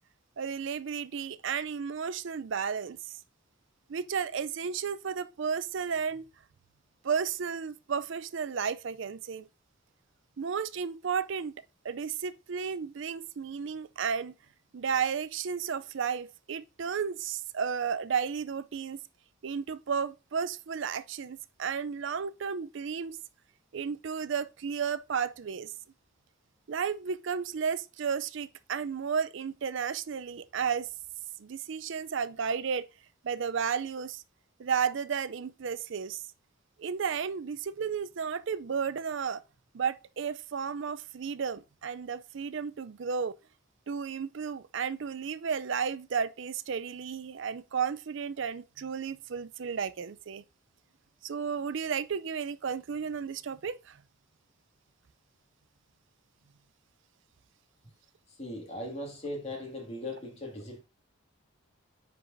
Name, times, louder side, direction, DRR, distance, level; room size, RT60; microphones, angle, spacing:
voice 1, 0.4-3.2 3.9-6.3 7.0-9.5 10.4-14.3 14.7-19.0 19.4-23.2 23.7-25.7 26.7-30.9 31.4-32.8 33.2-34.2 34.6-36.2 36.8-39.4 39.7-43.3 43.9-50.4 51.2-54.0, right 6 dB, 60° right, 0.4 m, -33 dB
voice 2, 58.3-60.8, left 1 dB, 30° left, 2.1 m, -39 dB
9.6 x 4.7 x 2.6 m
head